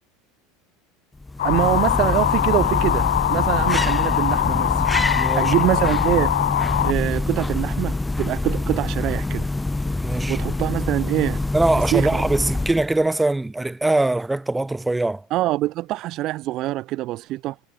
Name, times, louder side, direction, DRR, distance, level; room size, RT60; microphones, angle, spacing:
sound 1, 1.2-13.0, left 2 dB, 10° left, 2.1 m, -25 dB
sound 2, 1.4-6.9, left 13 dB, 75° left, 3.4 m, -22 dB
voice 1, 1.4-6.5 6.8-9.5 10.3-11.4 11.9-12.2 15.3-17.6, right 16 dB, 50° right, 0.8 m, -24 dB
voice 2, 5.2-5.5 10.0-10.4 11.5-15.2, right 2 dB, 10° right, 6.5 m, -22 dB
hypercardioid pair, 80°, 0 cm